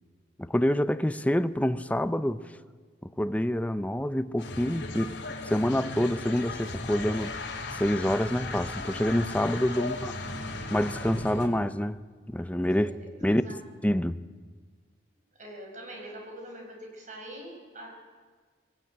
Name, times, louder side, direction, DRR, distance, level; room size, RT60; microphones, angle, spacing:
voice 1, 0.4-2.4 3.0-5.2 5.5-7.3 7.7-10.1 10.7-12.0 12.3-12.9 13.2-14.2, left 1 dB, 10° left, 0.6 m, -27 dB
sound 1, 4.4-11.5, left 2 dB, 85° left, 2.9 m, -36 dB
voice 2, 9.8-10.6 12.7-13.6 15.4-17.9, right 1 dB, 45° right, 5.8 m, -45 dB
21.5 x 18.0 x 9.0 m
head